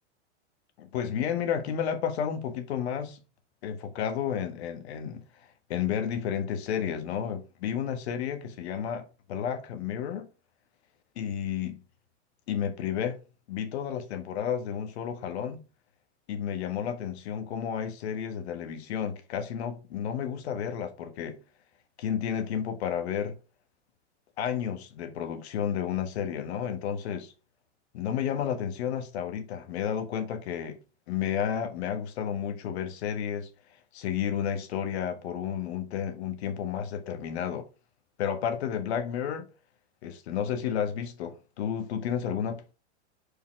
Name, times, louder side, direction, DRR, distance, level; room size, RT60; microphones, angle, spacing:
voice 1, 0.8-3.2 3.6-5.2 5.7-10.3 11.1-11.8 12.5-13.2 13.5-15.6 16.3-21.4 22.0-23.4 24.4-27.3 27.9-30.8 31.1-33.5 33.9-37.7 38.2-39.5 40.0-42.7, left 8 dB, 65° left, 1.5 m, -31 dB
5.1 x 4.3 x 5.8 m
supercardioid pair, 145°, 35 cm